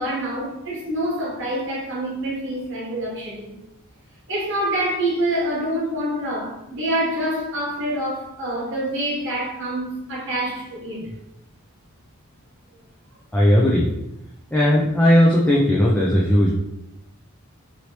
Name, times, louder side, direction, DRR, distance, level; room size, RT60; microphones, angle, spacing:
voice 1, 0.0-3.5 4.3-11.1, right 1 dB, 55° right, -5 dB, 1.2 m, -26 dB
voice 2, 13.3-13.9 14.5-16.5, equal, 5° left, -5 dB, 0.3 m, -17 dB
3.0 x 2.7 x 2.9 m, 0.86 s
head